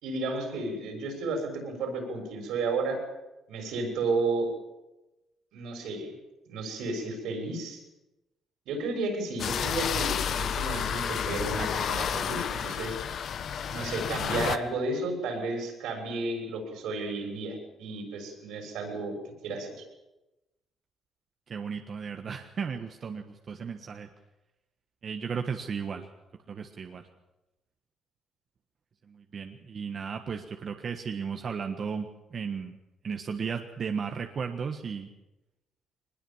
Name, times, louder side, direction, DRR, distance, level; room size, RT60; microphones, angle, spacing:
voice 1, 0.0-3.0 3.5-4.5 5.5-6.1 6.5-7.8 8.7-13.0 13.7-19.1 19.4-19.8, right 3 dB, 85° right, 4 dB, 6.6 m, -32 dB
sound 1, 9.4-14.6, left 8 dB, 65° left, 1.1 m, -30 dB
voice 2, 21.5-24.1 25.0-26.1 26.5-27.1 29.1-32.8 33.0-35.1, right 6 dB, 50° right, 5 dB, 1.4 m, -35 dB
22.0 x 20.5 x 7.3 m, 1.0 s
cardioid pair, 90°, 0 cm